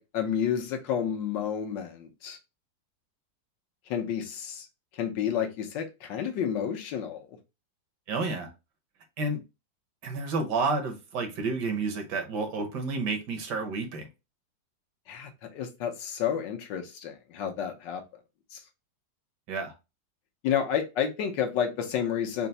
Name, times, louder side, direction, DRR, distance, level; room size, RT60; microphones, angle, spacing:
voice 1, 0.0-2.4 3.9-4.6 5.0-7.3 15.1-18.0 18.5-18.6 20.4-22.5, left 8 dB, 75° left, 1.4 m, -30 dB
voice 2, 8.1-8.5 9.2-9.4 10.0-14.1 19.5-19.7, right 3 dB, 70° right, 1.5 m, -30 dB
4.5 x 2.0 x 3.9 m
omnidirectional pair, 2.0 m